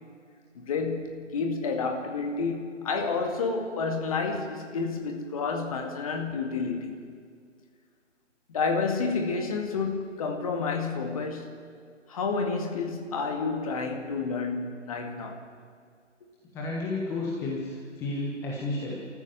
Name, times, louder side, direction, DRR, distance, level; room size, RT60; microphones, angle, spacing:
voice 1, 0.6-7.0 8.5-11.5 12.1-15.5, left 4 dB, 30° left, 2.2 m, -30 dB
voice 2, 16.5-19.1, left 2 dB, 5° left, 1.3 m, -32 dB
28.5 x 14.0 x 7.9 m
figure-of-eight pair, 145°, 37 cm